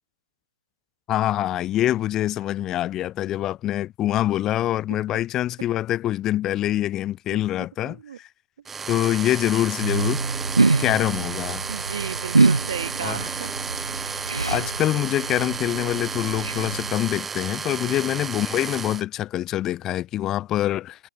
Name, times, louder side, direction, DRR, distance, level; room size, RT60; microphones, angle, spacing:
voice 1, 1.1-8.3 8.9-10.2 10.8-11.6 13.0-13.2 14.5-21.1, left 13 dB, 15° left, 0.7 m, -25 dB
voice 2, 7.8-8.2 11.7-13.5 13.9-14.2 17.6-18.2, right 8 dB, 45° right, 1.9 m, -35 dB
sound 1, 8.6-19.0, right 5 dB, 5° right, 3.8 m, -33 dB
sound 2, 9.8-17.1, right 3 dB, 85° right, 3.5 m, -25 dB
figure-of-eight pair, 155°, 3 cm